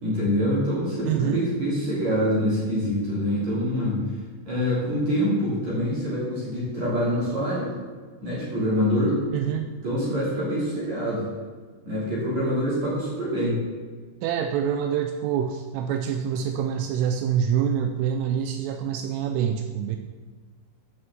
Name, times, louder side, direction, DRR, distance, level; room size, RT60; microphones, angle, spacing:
voice 1, 0.0-4.0 4.4-7.7 8.2-9.2 9.8-11.2 11.8-13.6, equal, 40° right, -7 dB, 3.2 m, -25 dB
voice 2, 1.1-1.4 9.3-9.7 14.2-20.0, right 8 dB, 85° right, 6 dB, 3.1 m, -26 dB
9.7 x 5.5 x 7.4 m, 1.4 s
omnidirectional pair, 5.8 m